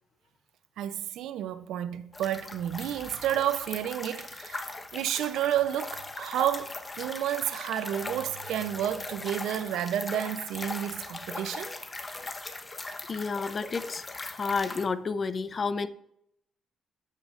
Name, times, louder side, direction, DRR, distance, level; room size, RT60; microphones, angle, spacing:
voice 1, 0.8-11.7, right 11 dB, 85° right, 0.6 m, -31 dB
sound 1, 2.1-14.9, left 2 dB, 25° left, 1.1 m, -39 dB
voice 2, 13.1-15.9, left 4 dB, 40° left, 0.6 m, -31 dB
12.5 x 8.4 x 2.5 m
cardioid pair, 90°, 0 cm